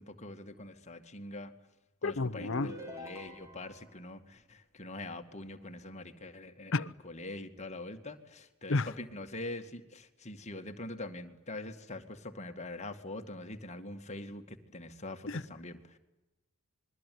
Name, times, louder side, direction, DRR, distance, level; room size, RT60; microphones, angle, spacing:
voice 1, 0.0-1.5 2.0-16.0, left 2 dB, 30° left, 2.2 m, -44 dB
voice 2, 2.0-2.7 6.7-6.9 8.7-8.9 15.3-15.4, left 3 dB, 60° left, 0.9 m, -31 dB
sound 1, 2.4-3.9, left 1 dB, 15° right, 4.5 m, -45 dB
27.0 x 22.0 x 9.5 m
head